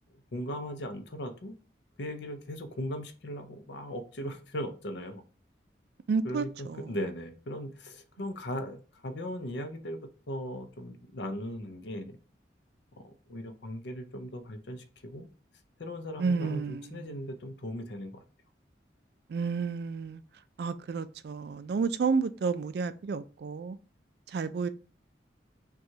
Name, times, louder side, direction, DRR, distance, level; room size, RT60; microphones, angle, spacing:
voice 1, 0.3-1.5 2.0-5.2 6.2-12.2 13.0-15.3 15.8-18.2, equal, 75° left, 0.7 m, -38 dB
voice 2, 6.1-7.0 16.2-17.1 19.3-20.2 20.6-23.8 24.3-24.7, right 5 dB, 60° right, 0.3 m, -31 dB
5.8 x 2.3 x 2.7 m
head